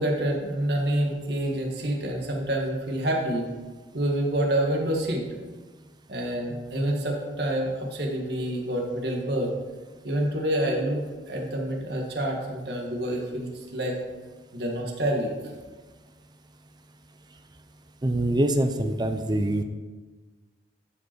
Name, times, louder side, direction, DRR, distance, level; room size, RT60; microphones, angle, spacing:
voice 1, 0.0-3.5 3.9-5.3 6.1-9.5 10.0-11.0 11.3-14.0 14.5-15.3, right 1 dB, 60° right, -1 dB, 1.7 m, -27 dB
voice 2, 18.0-19.6, right 1 dB, 25° right, 7 dB, 0.6 m, -24 dB
12.5 x 5.1 x 4.5 m, 1.3 s
head